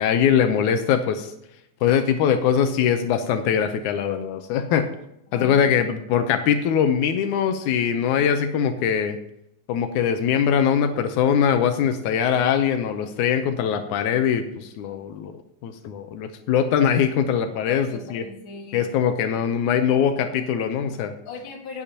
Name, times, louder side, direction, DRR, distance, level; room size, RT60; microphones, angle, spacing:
voice 1, 0.0-1.3 1.8-4.9 5.3-9.2 9.7-15.3 15.6-18.2 18.7-21.1, left 8 dB, 85° left, 7 dB, 2.2 m, -22 dB
voice 2, 5.3-5.8 17.7-18.9 21.2-21.8, left 3 dB, 45° left, 1 dB, 2.4 m, -38 dB
18.0 x 8.4 x 2.9 m, 0.80 s
omnidirectional pair, 3.4 m